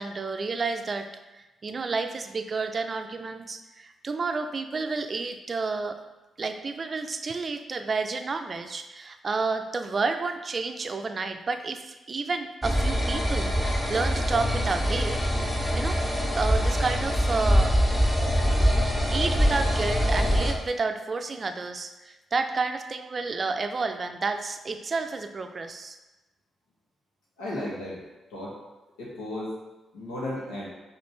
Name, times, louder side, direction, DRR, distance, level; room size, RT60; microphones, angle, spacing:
voice 1, 0.0-6.0 6.4-16.0 16.4-17.8 19.1-26.0, right 4 dB, 45° right, 7 dB, 0.4 m, -30 dB
sound 1, 12.6-20.5, equal, 15° left, 0.9 m, -24 dB
voice 2, 27.4-28.0 28.3-28.5 29.0-29.6 29.9-30.7, left 1 dB, 85° left, -5 dB, 1.0 m, -34 dB
5.2 x 2.5 x 3.2 m, 1.1 s
hypercardioid pair, 45°, 0 cm